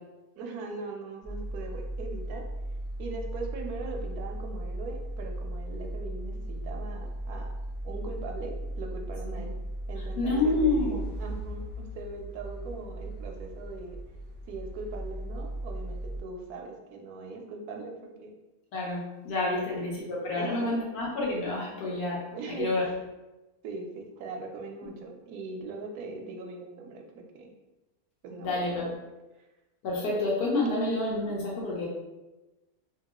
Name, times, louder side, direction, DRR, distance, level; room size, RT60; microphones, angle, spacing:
voice 1, 0.4-2.5 3.0-7.5 7.8-9.5 9.9-14.0 14.5-18.3 19.5-19.8 20.3-20.7 22.3-22.9 23.6-27.5 28.2-28.9, right 3 dB, 80° right, 2 dB, 1.1 m, -40 dB
sound 1, 1.2-16.2, right 1 dB, 10° left, 0.5 m, -37 dB
voice 2, 10.2-11.0 18.7-22.2 22.5-22.8 24.8-24.9 28.4-29.0 29.8-31.9, left 2 dB, 90° left, -5 dB, 1.4 m, -28 dB
2.9 x 2.7 x 2.9 m, 1.0 s
omnidirectional pair, 1.6 m